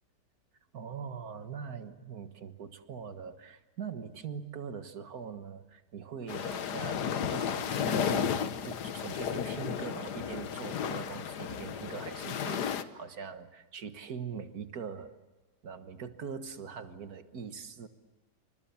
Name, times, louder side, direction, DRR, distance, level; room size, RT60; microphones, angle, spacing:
voice 1, 0.7-15.1 15.6-17.9, right 6 dB, 60° right, 9 dB, 1.9 m, -42 dB
sound 1, 6.3-12.8, left 8 dB, 75° left, 1.7 m, -33 dB
29.0 x 25.5 x 7.2 m, 1.2 s
omnidirectional pair, 1.8 m